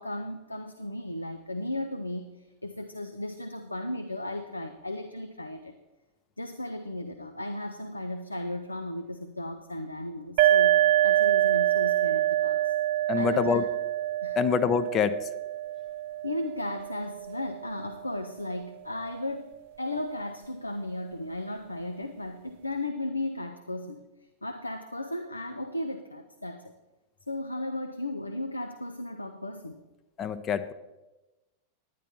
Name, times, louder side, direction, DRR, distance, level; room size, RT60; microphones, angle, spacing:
voice 1, 0.0-5.8 6.4-10.8 11.0-12.7 13.1-13.6 14.2-14.4 16.2-24.1 24.4-26.7 27.3-29.8, left 1 dB, 85° left, 7 dB, 0.6 m, -35 dB
sound 1, 10.4-17.9, right 13 dB, 50° right, 0.4 m, -26 dB
voice 2, 13.1-13.6 14.4-15.2 30.2-30.7, left 7 dB, 30° left, 11 dB, 0.6 m, -25 dB
11.0 x 10.0 x 4.4 m, 1.1 s
figure-of-eight pair, 90°, 0 cm